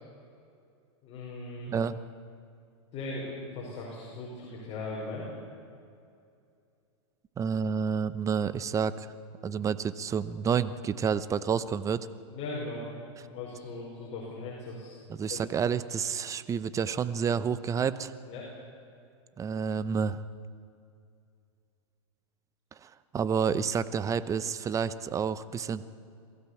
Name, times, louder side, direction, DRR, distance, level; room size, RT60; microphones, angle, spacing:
voice 1, 1.0-1.7 2.9-5.3 12.3-12.8 13.3-15.0 15.3-15.4 18.3-18.5, left 2 dB, 40° left, -4 dB, 5.7 m, -38 dB
voice 2, 1.7-2.0 7.4-9.1 9.4-12.1 15.1-18.1 19.4-20.2 22.8-25.8, right 6 dB, 20° right, 15 dB, 0.8 m, -29 dB
22.0 x 15.5 x 8.5 m, 2.5 s
hypercardioid pair, 120°, 15 cm